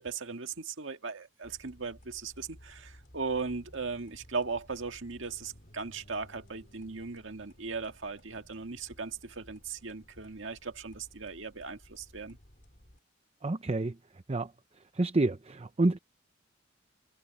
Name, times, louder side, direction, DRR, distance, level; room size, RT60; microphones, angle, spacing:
voice 1, 0.0-12.4, right 4 dB, 70° right, 1.9 m, -38 dB
sound 1, 1.4-13.0, equal, 45° left, 5.2 m, -57 dB
voice 2, 13.4-14.0 14.3-14.5 14.9-16.0, right 2 dB, 30° right, 0.6 m, -28 dB
head